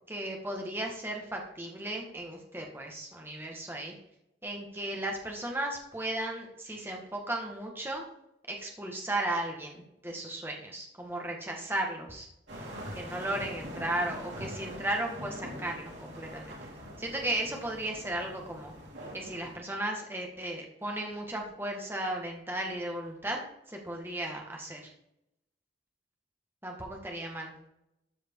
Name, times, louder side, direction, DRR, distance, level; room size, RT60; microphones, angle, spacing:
voice 1, 0.1-4.0 4.4-8.0 8.5-12.3 13.0-16.6 17.0-18.7 19.1-23.4 23.7-24.9 26.6-27.5, right 1 dB, 15° right, 1 dB, 1.8 m, -35 dB
sound 1, 12.5-19.6, equal, 90° right, 3.3 m, -43 dB
13.0 x 4.9 x 4.7 m, 0.82 s
head